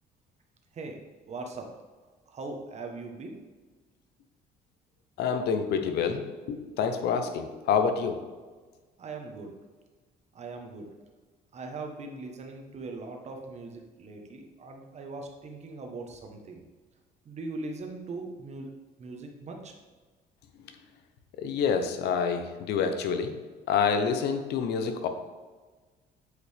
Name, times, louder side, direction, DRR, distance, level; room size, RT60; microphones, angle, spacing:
voice 1, 1.3-1.7 2.3-3.4 9.0-9.5 10.3-10.9 11.5-16.6 17.2-18.7 19.0-19.7, right 3 dB, 40° right, 3 dB, 1.2 m, -40 dB
voice 2, 5.2-8.2 21.4-23.3 23.7-25.1, left 6 dB, 75° left, 7 dB, 0.9 m, -27 dB
8.3 x 5.1 x 3.5 m, 1.3 s
cardioid pair, 110°, 17 cm